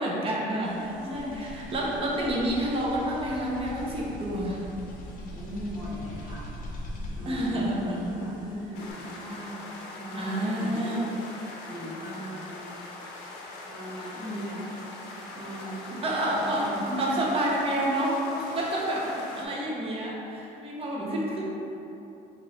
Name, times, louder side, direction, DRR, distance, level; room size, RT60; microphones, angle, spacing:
voice 1, 0.0-4.6 7.3-8.1 10.2-11.0 16.0-16.7 17.0-19.1 19.4-21.4, right 1 dB, 35° right, -4 dB, 0.7 m, -29 dB
sound 1, 0.6-8.9, left 1 dB, 50° left, 0.7 m, -41 dB
voice 2, 0.9-1.8 5.3-6.5 7.1-11.0 11.7-12.7 13.6-14.8 15.3-17.3 18.6-18.7 19.0-19.6 20.9-21.4, equal, 20° right, -11 dB, 1.2 m, -38 dB
sound 2, 8.7-19.5, left 2 dB, 90° left, 0.6 m, -42 dB
3.0 x 3.0 x 3.9 m, 2.9 s
cardioid pair, 110°, 17 cm